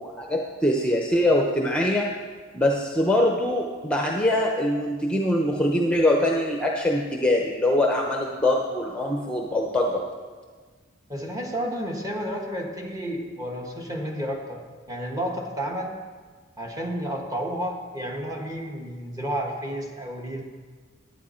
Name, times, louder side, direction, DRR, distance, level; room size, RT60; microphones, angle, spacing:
voice 1, 0.0-2.1 2.5-10.0, left 1 dB, 5° left, 0 dB, 0.7 m, -23 dB
voice 2, 11.1-14.6 14.9-15.9 16.6-20.4, equal, 20° right, 1 dB, 1.3 m, -31 dB
11.0 x 9.0 x 4.4 m, 1.5 s
head